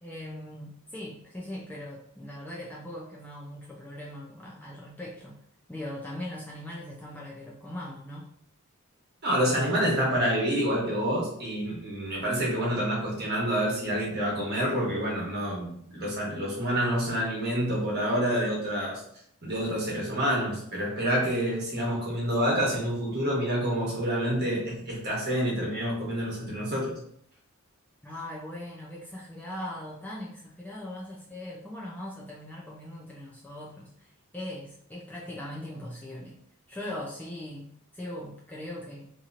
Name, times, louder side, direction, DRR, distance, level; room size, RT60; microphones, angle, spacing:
voice 1, 0.0-5.4 5.7-8.3 28.0-36.3 36.7-37.7 37.9-39.1, left 1 dB, 10° left, -4 dB, 0.4 m, -40 dB
voice 2, 9.2-19.0 19.4-27.0, equal, 45° right, -5 dB, 1.2 m, -28 dB
2.9 x 2.7 x 2.5 m, 0.67 s
head